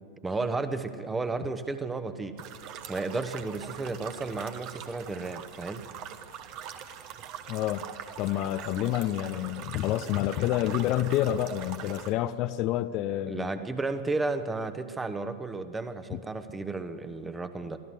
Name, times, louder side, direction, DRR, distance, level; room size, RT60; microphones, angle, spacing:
voice 1, 0.2-2.3 2.9-5.8 13.3-17.8, right 3 dB, 10° right, 10 dB, 1.2 m, -33 dB
sound 1, 2.4-12.1, right 9 dB, 40° right, 1.3 m, -43 dB
voice 2, 7.5-7.8 8.2-13.5 16.1-16.2, left 13 dB, 40° left, 11 dB, 0.6 m, -28 dB
23.5 x 15.0 x 8.0 m, 2.4 s
figure-of-eight pair, 90°, 0 cm